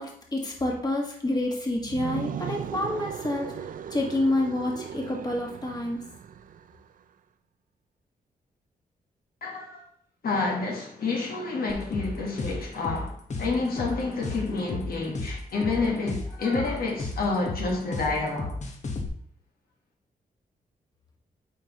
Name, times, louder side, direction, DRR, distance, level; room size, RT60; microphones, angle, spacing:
voice 1, 0.0-6.0, left 1 dB, 25° left, 1.7 m, -28 dB
sound 1, 1.8-6.8, right 8 dB, 55° right, 0.4 m, -37 dB
voice 2, 9.4-9.8 10.2-18.5, left 3 dB, 65° left, 1.5 m, -29 dB
sound 2, 11.7-19.1, left 3 dB, 45° left, 1.2 m, -33 dB
9.0 x 4.1 x 3.0 m
cardioid pair, 70°, 16 cm